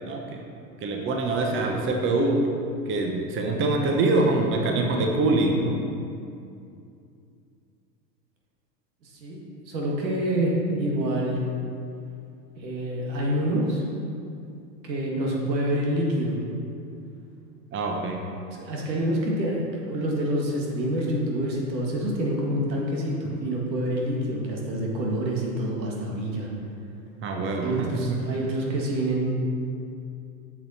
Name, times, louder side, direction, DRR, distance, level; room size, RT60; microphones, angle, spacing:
voice 1, 0.8-2.4 2.9-5.8 17.7-18.2 27.2-28.2, right 2 dB, 25° right, 1 dB, 0.9 m, -24 dB
voice 2, 9.0-9.4 9.7-11.4 12.6-13.8 14.8-16.4 18.6-26.5 27.6-29.3, right 1 dB, 90° right, -2 dB, 1.8 m, -27 dB
7.7 x 6.3 x 4.2 m, 2.5 s
hypercardioid pair, 105°, 49 cm